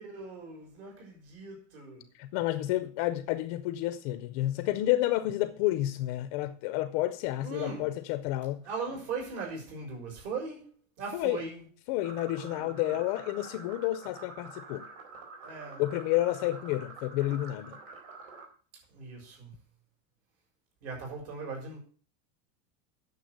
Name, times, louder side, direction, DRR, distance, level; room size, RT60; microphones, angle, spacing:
voice 1, 0.0-2.1 7.4-7.9 8.6-10.7 11.0-11.7 12.3-13.0 15.4-15.8 18.9-19.5 20.8-21.8, right 4 dB, 55° right, 6.1 m, -39 dB
voice 2, 2.1-8.7 11.1-11.4 11.9-14.9 15.8-17.8, left 15 dB, 30° left, 0.4 m, -30 dB
sound 1, 12.0-18.5, right 3 dB, 80° right, 4.3 m, -47 dB
9.4 x 6.8 x 7.9 m
supercardioid pair, 180°, 39 cm